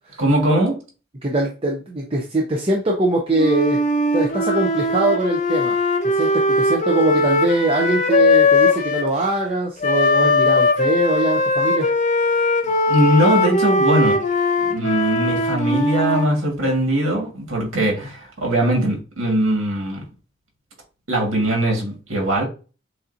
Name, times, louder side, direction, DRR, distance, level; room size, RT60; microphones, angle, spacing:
voice 1, 0.2-0.8 6.2-6.3 12.9-14.2 14.6-20.1 21.1-22.4, right 1 dB, 80° right, 1.7 m, -20 dB
voice 2, 1.2-3.8 4.1-5.8 6.0-11.9 12.3-12.5, right 2 dB, 25° right, 0.6 m, -22 dB
Wind instrument woodwind instrument, 3.3-9.1 9.8-16.3, left 2 dB, 35° left, 0.7 m, -19 dB
7.1 x 2.6 x 2.6 m
head